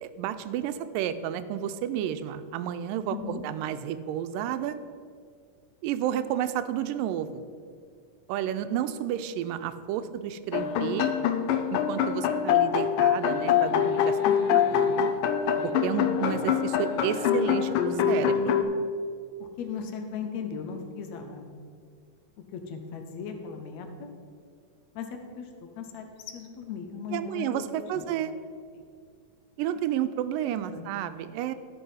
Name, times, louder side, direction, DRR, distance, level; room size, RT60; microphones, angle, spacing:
voice 1, 0.0-4.8 5.8-7.4 8.3-11.1 11.7-14.2 14.5-15.1 15.6-18.6 27.1-28.3 29.6-31.5, right 10 dB, 90° right, 11 dB, 2.2 m, -31 dB
voice 2, 3.1-3.4 14.2-14.6 19.6-21.5 22.5-24.1 25.0-25.1 25.4-25.5 25.8-27.6 27.9-28.1 28.7-28.8 30.7-30.9, left 6 dB, 70° left, 5 dB, 1.9 m, -37 dB
sound 1, 10.5-18.6, left 8 dB, 90° left, 2.3 m, -24 dB
12.5 x 5.5 x 5.5 m, 2.1 s
omnidirectional pair, 3.8 m